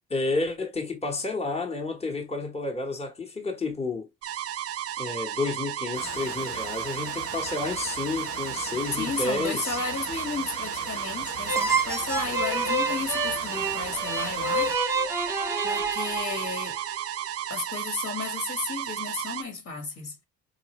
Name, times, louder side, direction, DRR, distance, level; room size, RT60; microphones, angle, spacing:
voice 1, 0.1-4.1 5.0-9.8, left 3 dB, 20° left, 1.2 m, -30 dB
sound 1, 4.2-19.4, right 11 dB, 50° right, 0.5 m, -33 dB
sound 2, 5.9-14.8, left 3 dB, 80° left, 1.6 m, -41 dB
voice 2, 8.9-14.8 15.6-16.8 17.5-20.2, left 4 dB, 65° left, 2.0 m, -33 dB
sound 3, 11.5-17.0, right 3 dB, 10° right, 1.0 m, -28 dB
5.1 x 2.5 x 3.1 m
cardioid pair, 90°, 30 cm